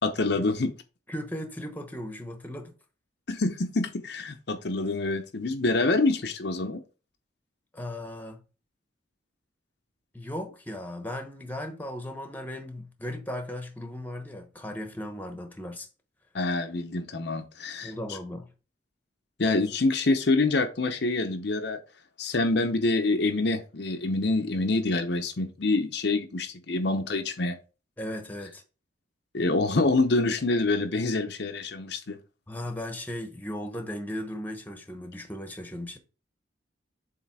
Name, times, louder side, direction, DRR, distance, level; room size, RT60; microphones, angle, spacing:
voice 1, 0.0-0.7 3.3-6.8 16.3-17.9 19.4-21.8 22.2-27.6 29.3-32.2, left 3 dB, 60° left, 0.7 m, -26 dB
voice 2, 1.1-2.7 7.7-8.4 10.1-15.9 17.8-18.5 28.0-28.6 32.5-36.0, left 1 dB, 10° left, 1.0 m, -37 dB
7.4 x 3.2 x 4.7 m
head